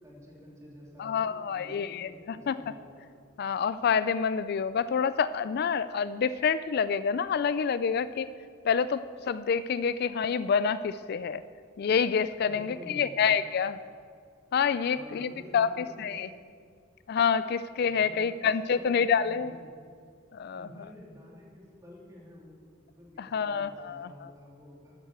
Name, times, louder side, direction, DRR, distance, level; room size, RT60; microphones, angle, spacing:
voice 1, 0.0-3.1 12.4-13.3 14.9-16.1 17.8-19.8 20.6-24.9, left 1 dB, 15° right, -3 dB, 3.3 m, -49 dB
voice 2, 1.0-2.7 3.4-8.3 8.6-11.4 11.8-13.8 14.5-16.3 17.1-19.6 20.3-20.9 23.2-24.3, left 6 dB, 55° left, 15 dB, 0.3 m, -28 dB
13.0 x 8.7 x 8.0 m, 2.2 s
head